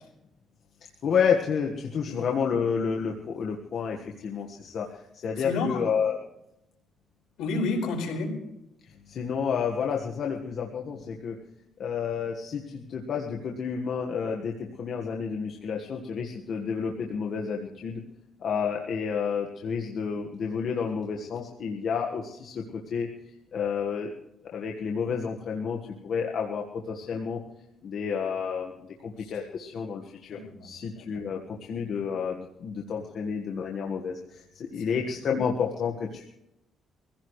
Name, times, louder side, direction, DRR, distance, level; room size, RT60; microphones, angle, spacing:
voice 1, 1.0-6.2 9.1-11.4 11.8-18.0 18.4-23.1 23.5-24.1 24.5-27.4 27.8-28.7 29.0-36.3, left 6 dB, 60° left, 0 dB, 1.5 m, -30 dB
voice 2, 5.4-5.8 7.4-8.4 30.3-31.2 34.9-35.0, left 3 dB, 85° left, 2 dB, 4.8 m, -31 dB
24.0 x 16.0 x 3.2 m, 0.85 s
cardioid pair, 90°, 0 cm